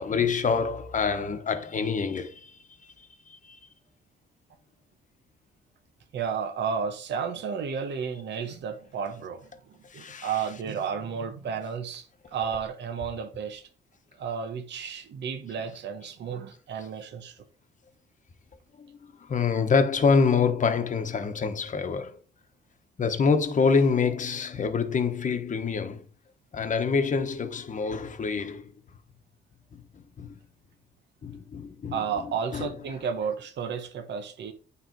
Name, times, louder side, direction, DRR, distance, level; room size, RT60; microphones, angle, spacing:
voice 1, 0.0-3.6 9.9-10.8 12.4-12.6 15.7-15.8 16.8-16.9 18.8-22.2 23.0-26.1 26.5-28.7 29.7-30.4 31.2-33.3, left 5 dB, 40° left, 1.0 m, -27 dB
voice 2, 6.1-9.5 9.9-13.7 14.2-17.4 31.9-34.5, right 6 dB, 65° right, 1.0 m, -32 dB
8.9 x 3.3 x 4.6 m
cardioid pair, 90°, 20 cm